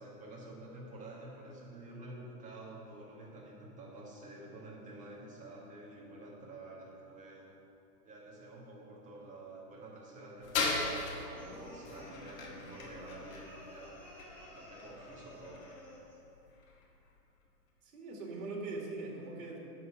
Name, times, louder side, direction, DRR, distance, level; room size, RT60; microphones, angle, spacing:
voice 1, 0.0-7.6 8.0-14.0 14.3-15.6, right 2 dB, 15° right, -4 dB, 1.8 m, -49 dB
sound 1, 10.4-17.1, left 3 dB, 60° left, 1.9 m, -40 dB
sound 2, 11.4-16.2, equal, 5° left, 1.2 m, -53 dB
voice 2, 17.9-19.6, right 3 dB, 65° right, -1 dB, 2.4 m, -41 dB
10.5 x 4.2 x 6.6 m, 2.7 s
hypercardioid pair, 140°, 46 cm